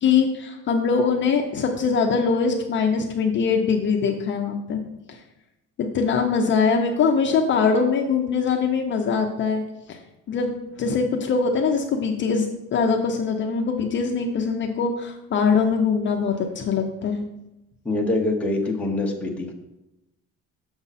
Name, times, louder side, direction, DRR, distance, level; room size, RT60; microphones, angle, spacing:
voice 1, 0.0-4.8 5.1-5.2 5.8-9.6 9.9-10.0 10.3-17.2, left 5 dB, 40° left, 2 dB, 0.6 m, -22 dB
voice 2, 17.8-19.5, left 2 dB, 5° left, -1 dB, 0.8 m, -24 dB
7.0 x 6.2 x 4.1 m, 0.94 s
cardioid pair, 170°, 31 cm